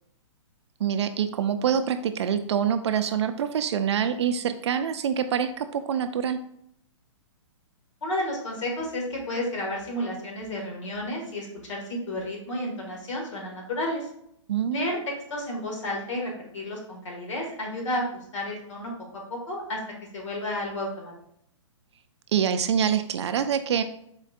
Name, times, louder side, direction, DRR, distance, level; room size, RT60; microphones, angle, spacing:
voice 1, 0.8-6.4 14.5-14.9 22.3-23.8, right 8 dB, 60° right, 9 dB, 0.4 m, -25 dB
voice 2, 8.0-14.1 14.7-15.0 15.3-18.0 18.3-19.8 20.1-21.1, left 1 dB, 65° left, 0 dB, 1.7 m, -32 dB
4.4 x 2.4 x 4.1 m, 0.72 s
hypercardioid pair, 155°, 16 cm